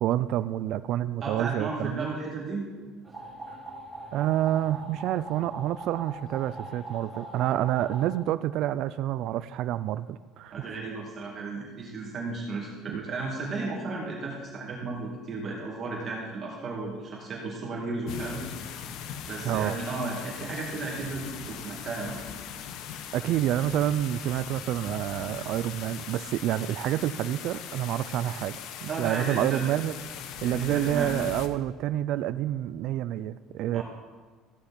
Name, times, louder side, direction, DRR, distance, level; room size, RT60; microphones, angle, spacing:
voice 1, 0.0-2.1 3.5-3.6 4.1-10.7 12.9-13.0 19.4-19.8 23.1-30.0 30.4-33.8, right 12 dB, 65° right, 14 dB, 0.4 m, -28 dB
voice 2, 1.2-2.7 10.5-18.5 19.3-22.2 28.9-29.7 30.4-31.1 33.7-33.8, right 3 dB, 35° right, -3 dB, 2.3 m, -34 dB
sound 1, 3.1-8.1, right 2 dB, 10° right, 2.5 m, -42 dB
sound 2, 18.1-31.5, left 8 dB, 65° left, 0.9 m, -40 dB
14.5 x 9.5 x 4.3 m, 1.4 s
cardioid pair, 120°, 0 cm